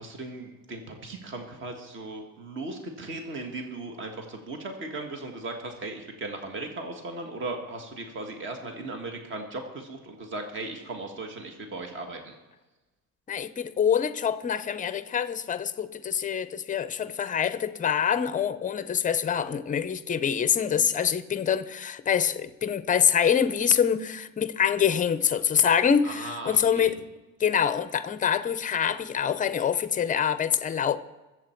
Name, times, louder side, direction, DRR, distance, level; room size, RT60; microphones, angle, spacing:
voice 1, 0.0-12.3 26.0-26.9, right 2 dB, 35° right, 1.6 m, -37 dB
voice 2, 13.3-27.0 27.4-31.0, left 8 dB, 25° left, 0.6 m, -25 dB
23.0 x 7.7 x 4.5 m
cardioid pair, 145°, 33 cm